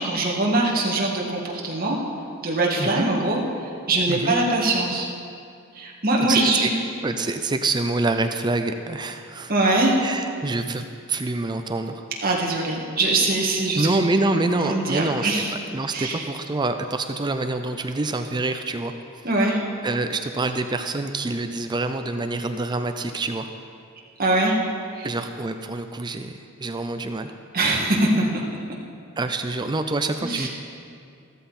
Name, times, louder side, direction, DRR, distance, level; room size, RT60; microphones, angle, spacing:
voice 1, 0.0-2.0 2.4-3.4 3.9-5.1 5.7-6.7 9.5-10.0 12.2-13.9 14.6-15.5 15.9-16.1 19.2-19.6 24.2-24.6 24.9-25.1 27.5-28.3 30.2-30.5, right 2 dB, 45° right, -2 dB, 2.1 m, -22 dB
voice 2, 6.3-6.7 7.0-9.5 10.0-12.0 13.8-15.4 15.7-19.3 19.8-23.5 25.0-27.3 29.2-30.5, right 2 dB, 20° right, 7 dB, 0.5 m, -26 dB
14.5 x 13.5 x 4.3 m, 2.4 s
head